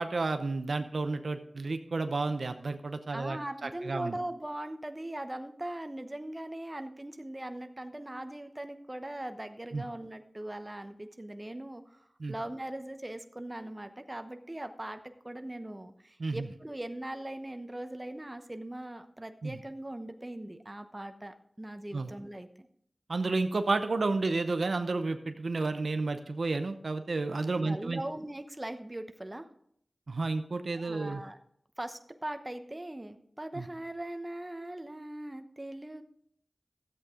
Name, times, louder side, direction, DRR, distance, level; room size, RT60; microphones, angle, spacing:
voice 1, 0.0-4.2 9.7-9.8 12.2-12.3 16.2-16.5 19.4-19.5 21.9-22.1 23.1-28.0 30.1-31.2 33.5-33.6, right 3 dB, 85° right, 8 dB, 0.7 m, -31 dB
voice 2, 3.1-22.7 27.6-29.5 30.7-31.4 31.8-36.0, right 1 dB, 25° right, 8 dB, 0.9 m, -40 dB
13.0 x 8.2 x 3.8 m, 0.68 s
wide cardioid pair, 50°, 0 cm